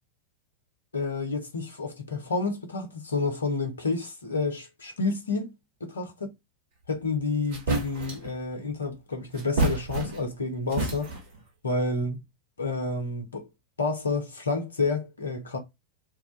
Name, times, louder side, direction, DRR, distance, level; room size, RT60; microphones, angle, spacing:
voice 1, 0.9-5.5 5.8-6.1 6.9-11.1 11.6-12.2 12.6-13.5 13.8-15.6, left 3 dB, 75° left, 0.9 m, -29 dB
sound 1, 7.1-7.2 7.5-8.3 9.3-10.4 10.7-11.4, right 2 dB, 50° right, 1.4 m, -29 dB
3.1 x 2.4 x 3.7 m
figure-of-eight pair, 90°, 0 cm